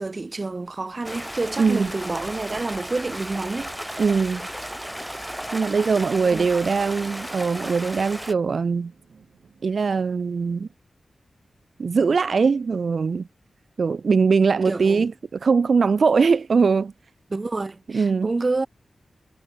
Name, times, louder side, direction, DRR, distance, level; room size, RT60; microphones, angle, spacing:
voice 1, 0.0-3.7 6.2-6.6 14.6-15.1 17.3-18.7, right 3 dB, 30° right, 1.0 m, -28 dB
Stream, 1.0-8.3, equal, 5° right, 0.9 m, -34 dB
voice 2, 1.6-1.9 4.0-4.5 5.5-8.9 9.6-10.7 11.8-13.3 13.8-16.9 17.9-18.3, right 5 dB, 55° right, 0.3 m, -21 dB
sound 1, 5.4-10.7, right 6 dB, 75° right, 3.7 m, -54 dB
wide cardioid pair, 130°, 0 cm